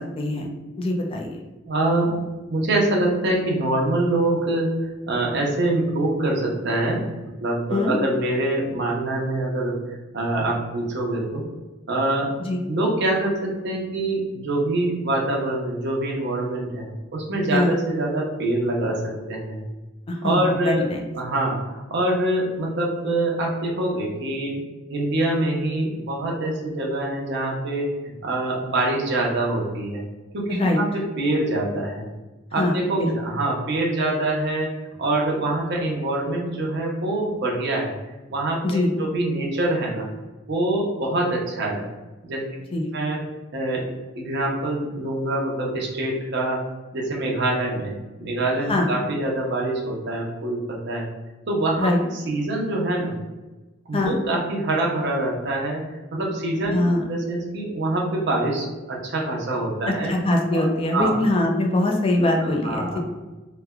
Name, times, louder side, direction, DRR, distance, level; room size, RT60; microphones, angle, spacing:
voice 1, 0.2-0.5 0.8-1.3 7.7-8.0 12.5-12.6 17.5-17.7 20.1-21.0 30.5-30.8 32.6-33.1 38.6-38.9 42.7-42.9 48.7-48.9 51.8-52.0 53.9-54.2 56.7-57.0 60.1-63.0, left 1 dB, 30° left, 1 dB, 0.4 m, -22 dB
voice 2, 1.7-2.2 2.5-11.4 11.9-12.3 12.7-19.6 20.2-24.6 24.9-30.0 30.3-32.0 32.5-34.7 35.0-37.9 38.3-40.1 40.5-41.8 42.2-42.4 42.9-43.2 43.5-46.6 46.9-51.1 51.5-53.1 53.9-60.1 60.5-60.7 60.9-61.2 62.4-63.0, right 2 dB, 60° right, -2 dB, 0.7 m, -25 dB
3.1 x 2.1 x 2.3 m, 1.2 s
head